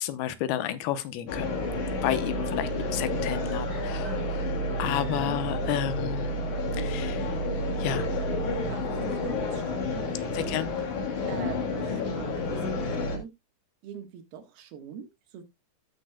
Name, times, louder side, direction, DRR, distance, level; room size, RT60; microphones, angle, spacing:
voice 1, 0.0-1.6 2.0-4.5 4.8-6.4 6.8-7.3 7.8-8.1 10.3-10.7, left 12 dB, 85° left, 2.7 m, -31 dB
sound 1, 1.3-13.2, left 1 dB, 55° left, 3.3 m, -30 dB
sound 2, 3.5-5.7 6.0-6.1, right 1 dB, 5° right, 2.6 m, -49 dB
voice 2, 6.9-7.3 8.7-10.5 11.3-13.3 13.8-15.4, right 7 dB, 85° right, 3.3 m, -44 dB
15.0 x 6.4 x 2.2 m
omnidirectional pair, 4.4 m